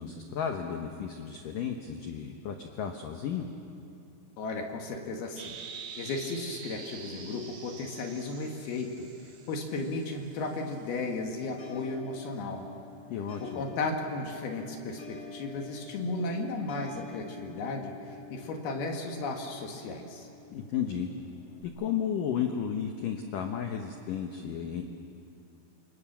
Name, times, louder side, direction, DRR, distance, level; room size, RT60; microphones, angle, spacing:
voice 1, 0.0-3.5 13.1-13.6 20.5-21.1 21.8-24.8, left 8 dB, 85° left, 4 dB, 1.9 m, -33 dB
voice 2, 4.4-5.6 6.0-9.1 9.5-12.7 13.4-20.3, left 3 dB, 60° left, 2 dB, 3.2 m, -35 dB
sound 1, 5.4-11.2, right 5 dB, 85° right, 5.0 m, -46 dB
sound 2, 5.8-21.6, left 5 dB, 30° left, 1.7 m, -50 dB
28.0 x 25.5 x 7.4 m, 2.5 s
omnidirectional pair, 5.7 m